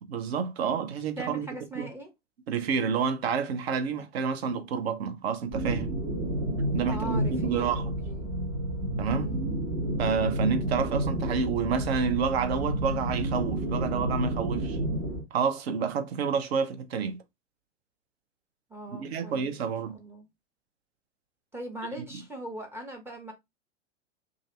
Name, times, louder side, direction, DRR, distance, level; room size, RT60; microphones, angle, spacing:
voice 1, 0.1-1.5 1.8-1.9 2.5-5.9 6.7-7.9 9.0-9.3 10.0-14.8 15.3-17.2 18.9-20.0 22.1-22.2, right 6 dB, 55° right, 0.7 m, -29 dB
voice 2, 1.2-2.1 6.9-7.8 8.1-8.4 9.1-9.5 18.7-20.3 21.5-23.3, right 1 dB, 5° right, 0.9 m, -40 dB
sound 1, 5.5-15.2, right 1 dB, 30° right, 1.1 m, -30 dB
2.6 x 2.5 x 3.1 m
figure-of-eight pair, 95°, 37 cm